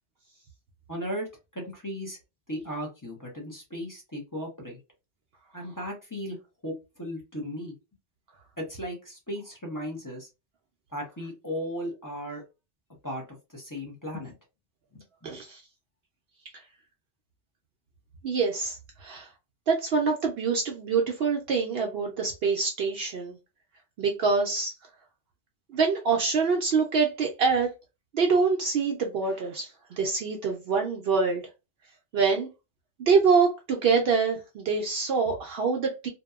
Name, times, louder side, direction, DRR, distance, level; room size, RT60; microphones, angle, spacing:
voice 1, 0.9-2.2 2.5-4.8 5.5-7.7 8.6-10.3 10.9-12.4 13.0-14.4 14.9-15.4, equal, 20° left, 0.7 m, -36 dB
voice 2, 15.2-15.6 18.2-19.3 19.7-23.4 24.0-24.7 25.7-27.7 28.1-29.7 30.0-31.4 32.1-32.5 33.0-36.1, right 5 dB, 65° right, 0.7 m, -25 dB
2.7 x 2.1 x 2.3 m
omnidirectional pair, 1.1 m